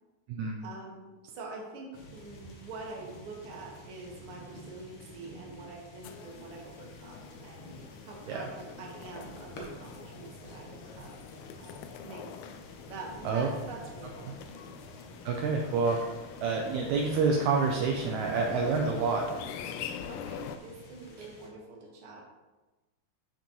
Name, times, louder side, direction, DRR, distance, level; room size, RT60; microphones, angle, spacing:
voice 1, 0.6-11.1 11.6-11.8 12.0-12.4 12.9-14.5 20.1-22.2, right 3 dB, 50° right, -2 dB, 1.9 m, -45 dB
sound 1, 1.9-21.5, equal, 55° left, 1.7 m, -50 dB
sound 2, 6.0-20.6, left 7 dB, 85° left, 1.7 m, -45 dB
voice 2, 15.3-16.0 16.4-19.3 21.2-21.3, right 4 dB, 75° right, 1 dB, 1.9 m, -28 dB
7.5 x 6.9 x 3.0 m, 1.2 s
omnidirectional pair, 3.8 m